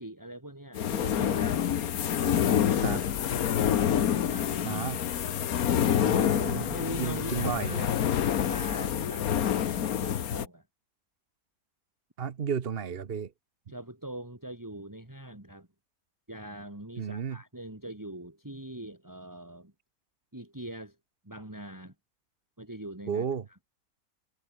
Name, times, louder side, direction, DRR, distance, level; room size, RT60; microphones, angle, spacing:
voice 1, 0.0-1.6 2.2-3.4 3.9-4.9 6.0-6.3 6.7-8.0 8.4-10.6 13.7-15.7 16.3-19.7 20.3-21.0 21.2-21.9 22.6-23.3, right 1 dB, 10° right, 3.1 m, -42 dB
sound 1, 0.8-10.5, left 9 dB, 75° left, 1.5 m, -27 dB
voice 2, 4.6-5.0 6.0-6.7 7.0-7.9 12.2-13.3 17.0-17.4 23.1-23.5, right 7 dB, 45° right, 1.1 m, -33 dB
omnidirectional pair, 1.6 m